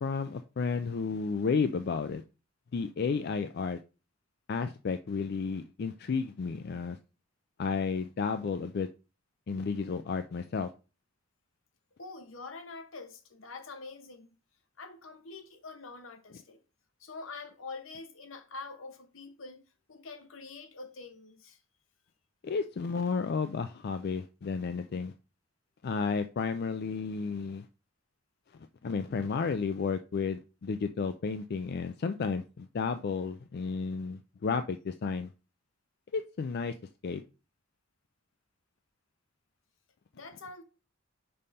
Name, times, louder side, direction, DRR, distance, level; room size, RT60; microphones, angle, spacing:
voice 1, 0.0-2.2 2.7-3.8 4.5-7.0 7.6-8.9 9.5-10.7 22.4-25.1 25.8-27.7 28.8-35.3 36.1-36.7 37.0-37.2, left 5 dB, 55° left, 0.4 m, -32 dB
voice 2, 12.0-14.3 14.8-16.6 17.0-19.6 19.9-21.6 40.1-40.6, left 3 dB, 80° left, 1.1 m, -45 dB
5.4 x 4.2 x 5.2 m
head